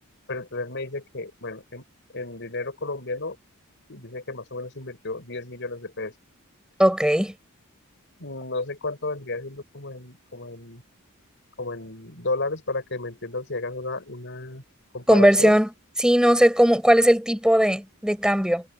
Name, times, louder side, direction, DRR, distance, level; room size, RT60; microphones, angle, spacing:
voice 1, 0.3-1.8 2.1-3.4 3.9-6.1 8.2-10.8 11.6-14.6 14.9-15.6, left 2 dB, 55° left, 7.0 m, -32 dB
voice 2, 6.8-7.3 15.1-15.7 16.0-18.6, equal, 5° right, 6.0 m, -18 dB
head